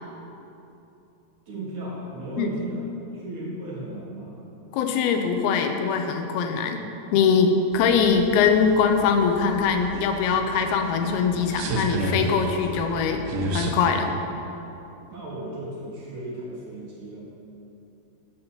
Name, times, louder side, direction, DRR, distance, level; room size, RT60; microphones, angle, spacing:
voice 1, 1.5-2.9 3.1-4.4 15.1-17.2, right 1 dB, 60° right, -6 dB, 2.4 m, -35 dB
voice 2, 4.7-6.8 7.1-13.2 13.5-14.1, left 6 dB, 85° left, 5 dB, 2.5 m, -22 dB
sound 1, 7.7-13.7, right 2 dB, 85° right, 2.8 m, -32 dB
9.7 x 4.3 x 6.5 m, 2.9 s
omnidirectional pair, 4.5 m